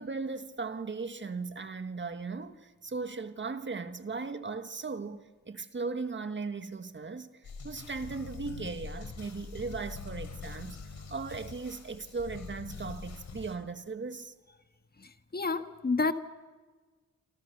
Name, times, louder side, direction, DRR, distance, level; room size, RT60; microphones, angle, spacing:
voice 1, 0.0-14.3, right 4 dB, 40° right, 1.6 m, -38 dB
sound 1, 7.4-13.5, left 5 dB, 70° left, 4.0 m, -44 dB
voice 2, 15.3-16.1, left 3 dB, 30° left, 1.5 m, -28 dB
28.0 x 26.5 x 6.8 m
wide cardioid pair, 105°, 30 cm